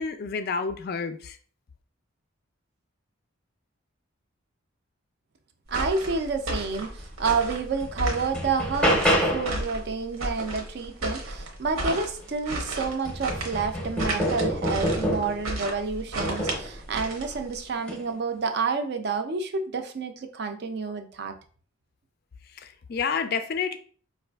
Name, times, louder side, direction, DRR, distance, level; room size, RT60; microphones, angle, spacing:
voice 1, 0.0-1.4 22.5-23.8, left 5 dB, 45° left, 0.3 m, -29 dB
voice 2, 5.7-21.4, right 4 dB, 50° right, 0.4 m, -29 dB
sound 1, 5.7-17.7, right 1 dB, 80° right, 0.9 m, -33 dB
sound 2, 7.2-7.3 7.8-9.6 12.0-12.1 12.5-15.5 16.2-16.7 17.8-18.0, equal, 5° left, 0.6 m, -27 dB
4.7 x 2.4 x 2.3 m
head